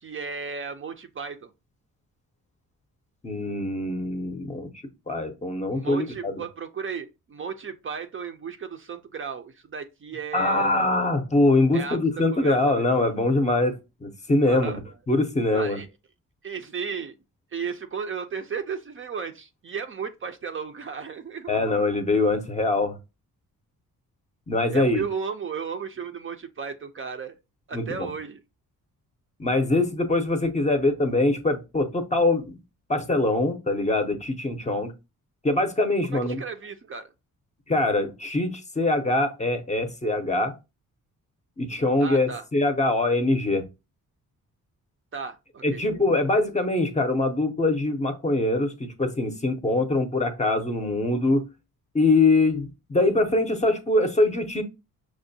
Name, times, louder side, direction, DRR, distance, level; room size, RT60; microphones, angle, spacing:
voice 1, 0.0-1.5 5.7-10.8 11.7-12.9 14.4-14.8 15.5-15.9 16.4-17.2 17.5-21.8 24.7-27.4 27.7-28.4 36.0-37.1 42.0-42.4 45.1-45.8, right 6 dB, 40° right, 0.5 m, -34 dB
voice 2, 3.2-4.7 5.1-6.4 10.3-14.7 15.1-15.8 21.5-23.0 24.5-25.0 27.7-28.1 29.4-32.6 32.9-34.9 35.4-36.4 37.7-40.5 41.6-43.7 45.6-51.4 51.9-54.6, left 2 dB, 20° left, 0.6 m, -23 dB
6.0 x 2.1 x 2.6 m
cardioid pair, 110°, 34 cm